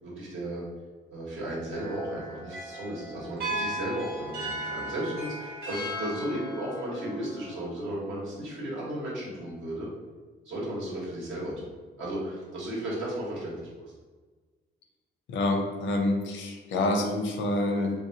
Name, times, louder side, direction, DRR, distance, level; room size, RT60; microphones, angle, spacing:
voice 1, 0.0-0.6 1.1-9.9 10.4-13.9, right 1 dB, 75° right, -5 dB, 1.2 m, -34 dB
sound 1, 1.7-8.0, right 1 dB, 50° right, 1.1 m, -37 dB
voice 2, 15.3-17.9, left 2 dB, 75° left, 2 dB, 0.6 m, -27 dB
3.0 x 2.3 x 2.7 m, 1.4 s
cardioid pair, 90°, 20 cm